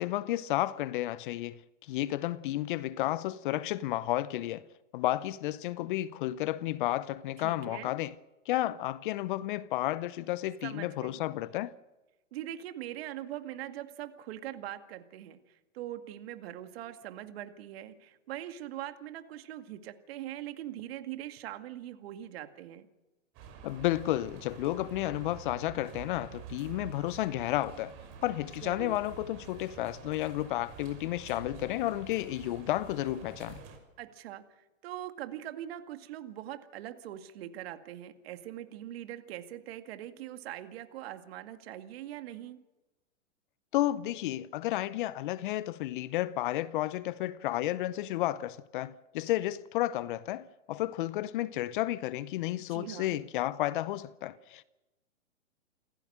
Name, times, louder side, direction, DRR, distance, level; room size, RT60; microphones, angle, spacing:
voice 1, 0.0-1.6 1.8-4.6 4.9-8.1 8.5-11.7 23.6-27.9 28.2-33.6 43.7-54.6, left 15 dB, 40° left, 0.7 m, -32 dB
voice 2, 7.4-8.0 10.6-11.2 12.3-22.9 28.6-29.0 34.0-42.6 52.7-53.2, right 12 dB, 50° right, 2.1 m, -42 dB
sound 1, 23.3-33.8, right 6 dB, 35° right, 6.3 m, -48 dB
28.5 x 15.0 x 6.6 m
hypercardioid pair, 125°, 38 cm